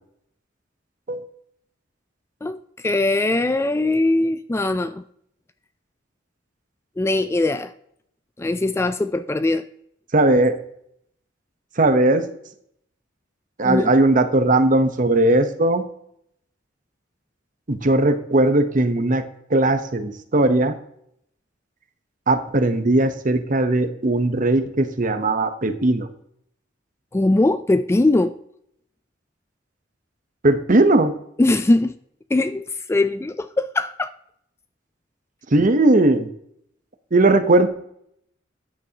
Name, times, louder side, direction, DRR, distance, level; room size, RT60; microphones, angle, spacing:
voice 1, 2.4-5.0 7.0-7.7 8.4-9.7 13.6-13.9 27.1-28.3 31.4-32.0 32.3-34.1, left 2 dB, 15° left, 12 dB, 0.3 m, -21 dB
voice 2, 10.1-10.6 11.8-12.3 13.6-15.8 17.7-19.2 19.5-20.7 22.3-26.1 30.4-31.1 35.5-36.3 37.1-37.7, right 2 dB, 45° right, 9 dB, 0.9 m, -18 dB
13.0 x 9.6 x 2.9 m, 0.71 s
head